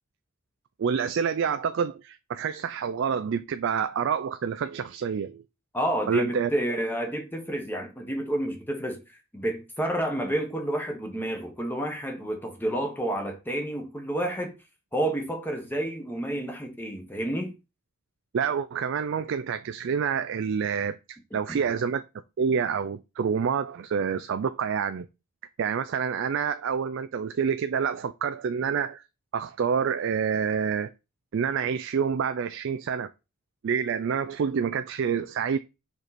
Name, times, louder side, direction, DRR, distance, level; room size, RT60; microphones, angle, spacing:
voice 1, 0.8-5.4 6.1-6.5 18.3-22.0 22.4-25.1 25.6-29.0 29.3-30.9 31.3-33.1 33.6-35.6, right 6 dB, 55° right, 0.3 m, -27 dB
voice 2, 5.7-14.5 14.9-17.5 21.5-21.6, right 1 dB, 10° left, 1.2 m, -30 dB
5.0 x 4.6 x 4.1 m
head